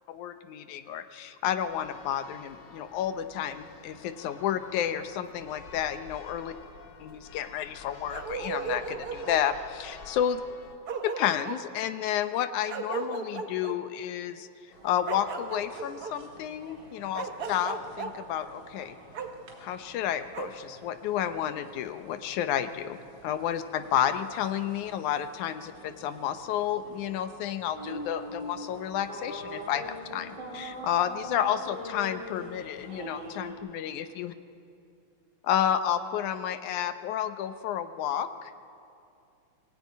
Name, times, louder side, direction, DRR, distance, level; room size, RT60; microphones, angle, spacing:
voice 1, 0.1-6.5 7.0-10.4 11.0-14.5 14.8-19.0 19.6-23.0 23.2-34.3 35.4-38.5, left 10 dB, 80° left, 10 dB, 2.3 m, -31 dB
Church bell, 1.6-10.8, left 6 dB, 60° left, 1.2 m, -50 dB
Bark, 8.1-9.4 10.5-10.6 10.9-11.6 12.7-13.8 15.1-16.1 17.1-18.1 19.1-19.3 20.3-20.5, right 5 dB, 60° right, 1.0 m, -35 dB
sound 1, 14.7-33.5, equal, 35° right, 4.2 m, -45 dB
23.5 x 16.5 x 9.4 m, 2.5 s
omnidirectional pair, 3.5 m